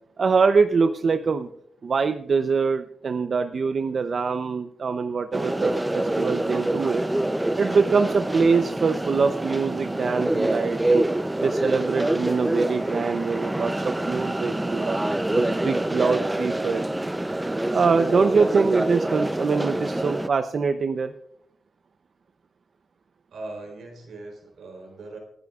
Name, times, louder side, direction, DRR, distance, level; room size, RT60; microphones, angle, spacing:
voice 1, 0.2-1.5 1.8-7.0 7.6-11.0 11.4-15.0 15.3-16.8 17.7-21.1, right 5 dB, 55° right, 8 dB, 0.7 m, -23 dB
sound 1, 5.3-20.3, right 1 dB, 15° right, 0.6 m, -26 dB
voice 2, 23.3-25.2, right 2 dB, 80° right, 2 dB, 3.8 m, -40 dB
27.5 x 10.5 x 2.4 m, 0.73 s
cardioid pair, 85°, 0 cm